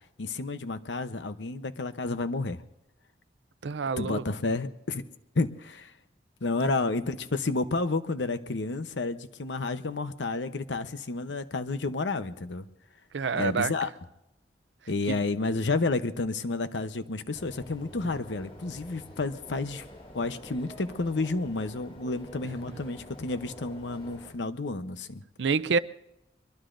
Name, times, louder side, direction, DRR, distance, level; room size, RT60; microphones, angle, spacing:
voice 1, 0.2-2.6 4.0-5.1 5.3-5.9 6.4-12.7 13.3-13.9 14.9-19.9 20.1-25.2, left 3 dB, 90° left, 0.9 m, -31 dB
voice 2, 3.6-4.2 13.1-13.7 25.4-25.8, right 5 dB, 80° right, 0.5 m, -27 dB
sound 1, 17.3-24.3, left 1 dB, 30° left, 7.9 m, -47 dB
23.5 x 22.5 x 2.6 m
head